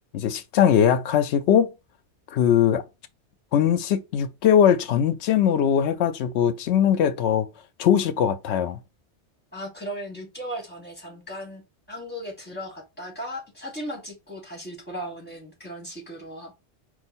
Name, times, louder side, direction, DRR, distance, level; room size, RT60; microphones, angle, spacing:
voice 1, 0.1-1.7 2.3-2.8 3.5-7.5 7.8-8.8, left 9 dB, 75° left, 0.8 m, -20 dB
voice 2, 9.5-11.6 11.9-16.5, equal, 10° left, 1.8 m, -36 dB
4.3 x 2.5 x 4.2 m
omnidirectional pair, 1.2 m